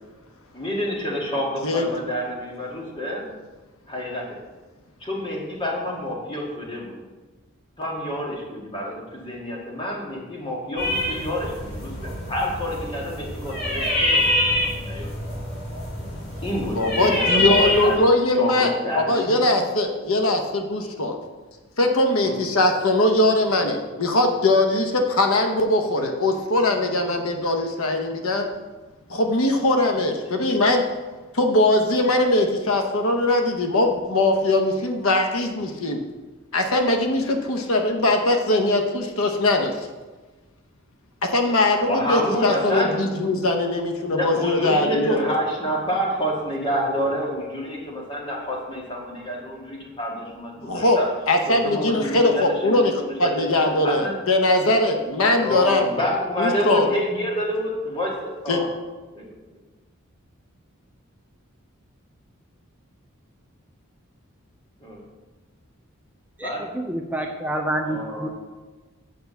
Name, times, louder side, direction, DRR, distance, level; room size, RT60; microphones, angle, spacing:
voice 1, 0.5-3.2 3.9-4.4 5.0-7.0 7.8-15.3 16.4-18.0 18.3-19.6 22.2-22.4 30.3-30.5 41.7-42.9 44.0-51.1 51.5-53.4 53.8-54.1 55.4-58.7 59.1-59.3 64.8-65.0 66.4-66.6 67.8-68.3, equal, 25° left, -3 dB, 1.8 m, -28 dB
sound 1, 10.8-18.0, left 1 dB, 45° left, 2.9 m, -25 dB
voice 2, 16.8-21.2 21.8-28.5 29.1-30.9 31.3-36.0 36.5-39.7 41.3-45.3 50.7-51.0 51.3-52.9 53.2-55.8 56.4-56.9 58.5-58.6, left 2 dB, 75° left, 4 dB, 0.9 m, -21 dB
voice 3, 66.4-68.3, right 1 dB, 10° right, 2 dB, 0.4 m, -28 dB
6.8 x 4.7 x 6.8 m, 1.2 s
head